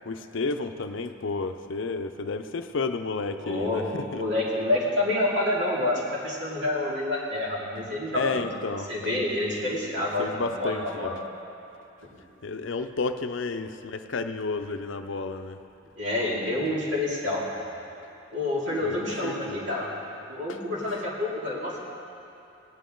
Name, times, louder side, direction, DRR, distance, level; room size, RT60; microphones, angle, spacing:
voice 1, 0.1-4.2 8.1-8.9 10.2-11.2 12.4-15.6 18.8-19.7 20.5-20.6, left 3 dB, 65° left, 8 dB, 0.6 m, -31 dB
voice 2, 3.4-8.5 8.9-11.1 16.0-17.5 18.3-19.9 20.3-21.8, left 1 dB, 60° right, -5 dB, 2.7 m, -28 dB
18.0 x 10.5 x 3.9 m, 2.9 s
head